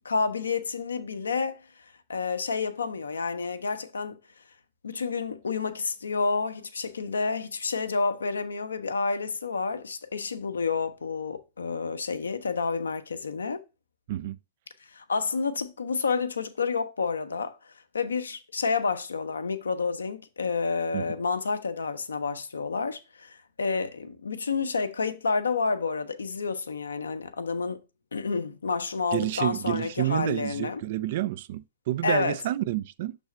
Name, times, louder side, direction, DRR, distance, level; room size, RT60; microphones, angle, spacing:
voice 1, 0.0-1.7 2.1-4.2 4.8-13.6 14.9-17.6 17.9-27.8 28.1-30.8 32.0-32.3, left 4 dB, 75° left, 0.6 m, -29 dB
voice 2, 14.1-14.4 20.9-21.1 29.1-33.2, right 14 dB, 55° right, 0.3 m, -29 dB
6.3 x 3.4 x 5.3 m
figure-of-eight pair, 90°, 0 cm